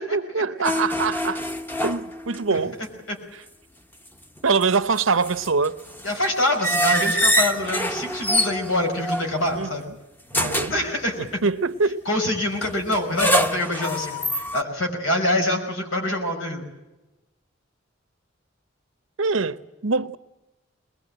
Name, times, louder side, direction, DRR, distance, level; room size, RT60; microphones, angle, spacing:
voice 1, 0.0-1.5 1.8-2.8 3.3-3.4 4.4-5.8 9.5-10.0 10.3-10.7 11.2-12.0 19.2-20.2, right 4 dB, 85° right, 0.9 m, -24 dB
sound 1, 0.6-2.6 2.8-2.9 4.4-9.7 10.3-10.9 12.6-14.6, equal, 10° left, 0.9 m, -25 dB
voice 2, 6.0-9.8 10.7-11.4 12.1-16.6, left 1 dB, 85° left, 5.5 m, -25 dB
22.0 x 21.0 x 8.9 m
head